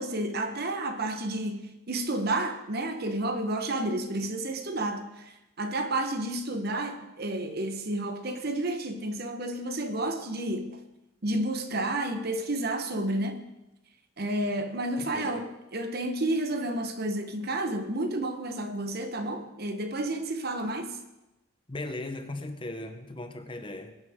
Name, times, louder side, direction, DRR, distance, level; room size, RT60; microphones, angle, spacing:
voice 1, 0.0-10.8 11.2-13.5 14.2-21.0, right 1 dB, 50° right, 1.1 m, -31 dB
voice 2, 15.0-15.5 21.7-24.0, left 2 dB, 25° left, 0.8 m, -38 dB
22.0 x 9.5 x 3.6 m
head